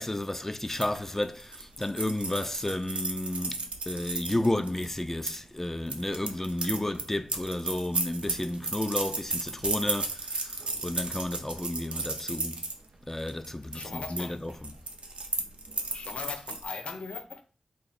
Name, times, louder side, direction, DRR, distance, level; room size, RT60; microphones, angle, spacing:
voice 1, 0.0-12.6 13.1-14.7, left 1 dB, 15° left, 0.3 m, -32 dB
sound 1, 0.7-5.4 5.9-12.7 13.2-13.5 13.7-14.2 14.5-16.6, right 3 dB, 65° right, 0.5 m, -34 dB
voice 2, 13.7-14.5 15.9-17.4, left 4 dB, 75° left, 0.6 m, -38 dB
3.0 x 2.6 x 4.1 m
wide cardioid pair, 110°, 2 cm